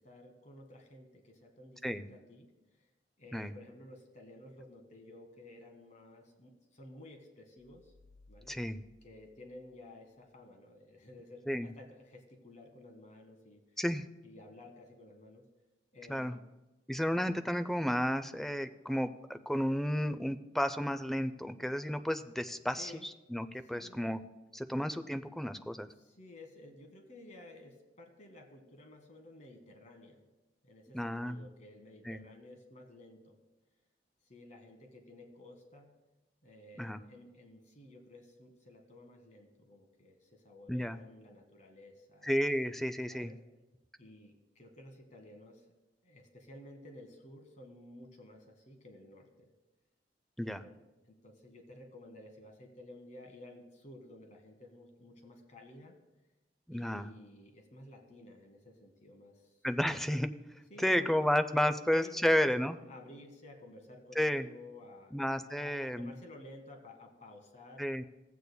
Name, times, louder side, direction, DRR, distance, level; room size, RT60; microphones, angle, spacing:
voice 1, 0.0-2.9 3.2-7.9 8.3-8.6 9.0-13.8 14.2-15.4 15.9-16.4 22.8-23.1 23.6-24.0 25.9-30.2 30.6-33.4 34.2-35.9 36.4-42.3 43.1-43.4 44.0-45.6 46.0-49.5 50.4-56.0 56.7-59.9 60.7-61.3 61.8-65.1 65.5-67.9, left 1 dB, 40° left, 3 dB, 1.2 m, -53 dB
sound 1, 7.6-10.2, left 2 dB, 35° right, 1.2 m, -63 dB
voice 2, 8.5-8.8 11.5-11.7 13.8-14.0 16.1-16.4 16.9-24.2 24.5-25.9 30.9-31.4 32.0-32.2 36.8-37.0 40.7-41.0 42.2-43.3 50.4-50.6 56.7-57.1 59.6-60.3 60.8-62.7 64.2-64.4 65.1-66.1 67.8-68.0, equal, ahead, 11 dB, 0.3 m, -32 dB
15.0 x 8.2 x 2.2 m, 1.0 s
head